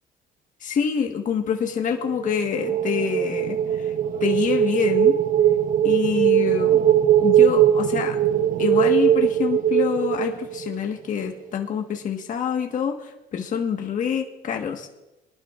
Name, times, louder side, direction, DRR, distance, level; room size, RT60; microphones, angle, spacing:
voice 1, 0.6-3.9 4.2-5.2 5.8-6.8 7.2-8.2 8.6-14.9, left 7 dB, 50° left, 3 dB, 1.5 m, -26 dB
sound 1, 2.0-10.9, right 10 dB, 55° right, 0.8 m, -20 dB
23.0 x 11.5 x 2.5 m, 0.97 s
cardioid pair, 110°, 17 cm